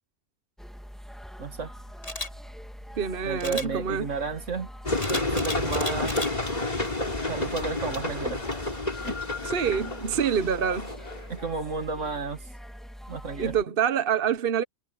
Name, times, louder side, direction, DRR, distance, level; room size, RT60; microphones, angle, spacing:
sound 1, 0.6-13.6, equal, ahead, 2.4 m, -43 dB
voice 1, 1.4-1.7 3.2-4.7 5.1-6.3 7.3-8.4 9.0-9.2 11.3-12.4 13.1-13.5, right 4 dB, 90° right, 2.3 m, -32 dB
Camera, 2.0-2.3 3.4-3.7 5.0-6.3 6.8-7.0, left 2 dB, 80° left, 6.5 m, -34 dB
voice 2, 3.0-4.1 9.5-10.9 13.4-14.6, right 7 dB, 50° right, 1.2 m, -26 dB
sound 2, 4.9-11.5, left 2 dB, 35° left, 3.4 m, -30 dB
omnidirectional pair, 1.2 m